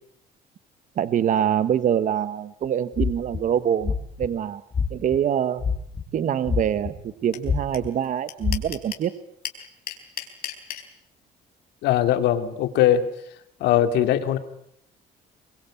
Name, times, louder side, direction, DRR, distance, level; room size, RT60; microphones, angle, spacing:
voice 1, 1.0-3.9 4.2-4.6 4.9-5.7 6.1-9.1, right 9 dB, 50° right, 14 dB, 1.2 m, -24 dB
sound 1, 2.9-3.4 3.8-4.3 4.7-5.2 5.6-6.0 6.5-7.1 7.4-7.9 8.4-8.6, left 6 dB, 35° left, 3.7 m, -24 dB
sound 2, 7.3-7.4 7.7-7.8 8.0-9.1 9.4-10.8, left 11 dB, 65° left, 4.2 m, -32 dB
voice 2, 11.8-13.0 13.6-14.4, left 11 dB, 80° left, 9 dB, 2.5 m, -20 dB
24.0 x 22.0 x 8.5 m, 0.71 s
cardioid pair, 110°, 17 cm